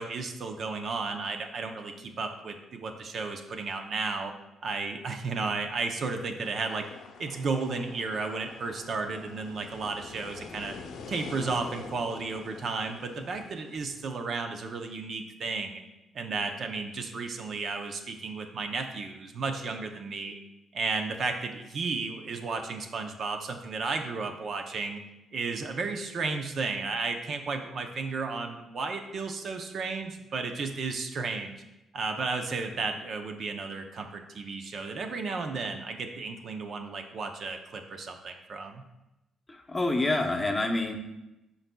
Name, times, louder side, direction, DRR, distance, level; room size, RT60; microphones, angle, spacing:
voice 1, 0.0-4.3 4.6-6.9 7.2-10.8 11.1-15.8 16.1-20.3 20.7-25.0 25.3-31.6 31.9-38.8, right 4 dB, 55° right, 5 dB, 0.6 m, -33 dB
sound 1, 6.4-14.1, left 5 dB, 75° left, 0.6 m, -46 dB
voice 2, 39.5-40.9, left 2 dB, 20° left, 3 dB, 0.8 m, -27 dB
11.5 x 4.0 x 2.2 m, 0.96 s
cardioid pair, 90°, 0 cm